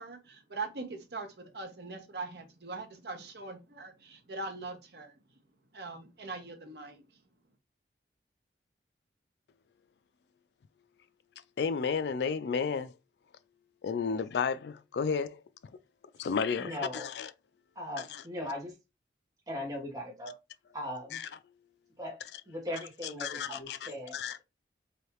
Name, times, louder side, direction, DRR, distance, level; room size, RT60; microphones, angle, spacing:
voice 1, 0.0-5.1 5.7-7.2, right 3 dB, 70° right, 0.9 m, -41 dB
voice 2, 11.6-12.9 13.8-15.4 16.2-17.3 18.1-18.2 21.1-21.3 23.2-24.4, left 5 dB, 70° left, 0.3 m, -32 dB
voice 3, 16.6-17.1 17.7-18.7 19.5-20.3 20.7-21.2 22.0-24.2, left 1 dB, 20° right, 1.2 m, -39 dB
3.3 x 2.7 x 2.9 m
head